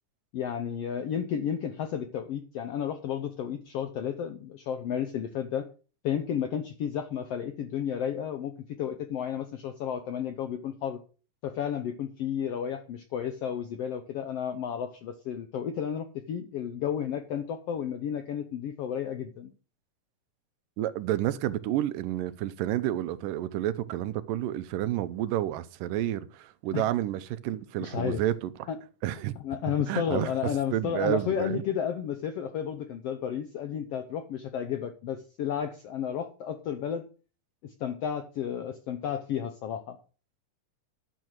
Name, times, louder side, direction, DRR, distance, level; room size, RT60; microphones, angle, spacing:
voice 1, 0.3-5.7 6.0-8.5 8.8-11.0 11.4-19.5 26.7-26.8 27.8-28.2 28.7-28.8 29.4-37.0 37.6-40.0, left 8 dB, 75° left, 1.4 m, -32 dB
voice 2, 20.8-28.7 29.0-29.3 29.7-30.3 30.7-31.6, right 13 dB, 85° right, 2.3 m, -30 dB
11.0 x 6.5 x 6.1 m
omnidirectional pair, 3.8 m